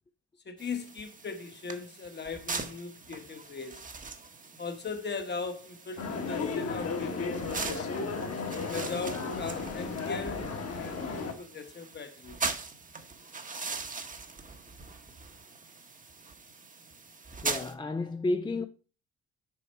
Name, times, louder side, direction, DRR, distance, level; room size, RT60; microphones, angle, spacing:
voice 1, 0.4-3.8 4.6-7.9 8.6-10.5 10.8-12.5, left 4 dB, 35° left, 1.1 m, -39 dB
sound 1, 0.6-17.7, right 4 dB, 25° right, 1.0 m, -41 dB
sound 2, 6.0-11.3, left 4 dB, 55° left, 1.5 m, -34 dB
voice 2, 17.4-18.6, left 2 dB, 15° left, 0.4 m, -31 dB
7.1 x 4.3 x 4.5 m
cardioid pair, 90°, 30 cm